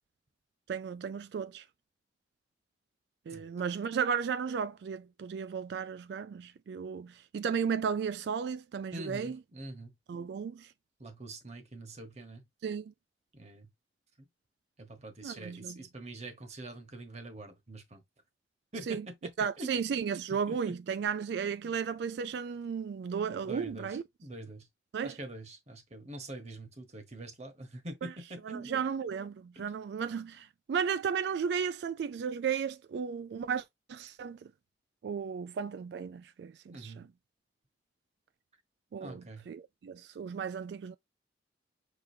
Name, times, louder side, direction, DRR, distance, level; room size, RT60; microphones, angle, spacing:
voice 1, 0.7-1.6 3.3-9.4 10.1-10.7 12.6-12.9 15.2-15.8 18.9-19.1 19.4-24.0 24.9-25.2 28.0-28.1 28.4-34.4 35.0-37.1 38.9-41.0, right 6 dB, 65° right, 0.3 m, -34 dB
voice 2, 8.9-9.9 11.0-12.4 13.3-13.7 14.2-14.3 14.8-18.0 18.7-19.3 19.6-19.9 20.5-20.7 21.6-21.7 23.4-24.7 25.0-28.8 29.5-29.7 36.7-37.1 39.0-39.5, right 2 dB, 40° right, 1.2 m, -45 dB
5.2 x 3.5 x 2.7 m
head